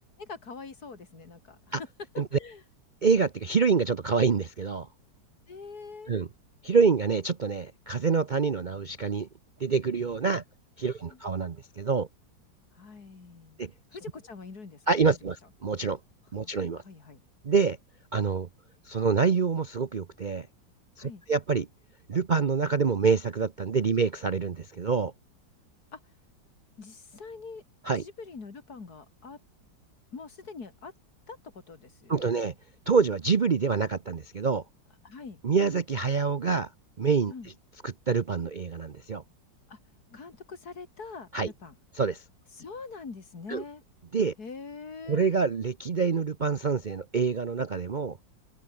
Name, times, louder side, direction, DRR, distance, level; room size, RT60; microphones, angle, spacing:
voice 1, 0.2-1.7 2.1-2.6 5.5-6.1 11.1-11.2 12.7-13.6 13.9-14.9 16.4-16.5 16.8-17.2 21.0-21.2 25.9-26.0 26.8-27.6 27.9-29.4 30.1-30.9 31.3-32.3 35.0-35.4 37.3-37.5 39.7-39.8 40.1-41.7 42.5-43.8 44.4-45.2, left 4 dB, 55° left, 3.1 m, -44 dB
voice 2, 3.0-4.9 6.1-6.3 6.6-9.3 9.6-10.4 10.8-12.1 13.6-13.7 14.9-16.0 16.3-16.8 17.4-17.8 18.1-18.5 18.9-20.5 21.0-21.7 22.1-25.1 27.9-28.0 32.1-32.5 32.9-34.6 35.4-36.7 37.0-37.3 37.8-39.2 41.3-41.5 42.0-42.2 43.5-43.6 44.1-44.3 45.1-48.2, right 5 dB, 70° right, 0.4 m, -26 dB
open air
omnidirectional pair, 2.0 m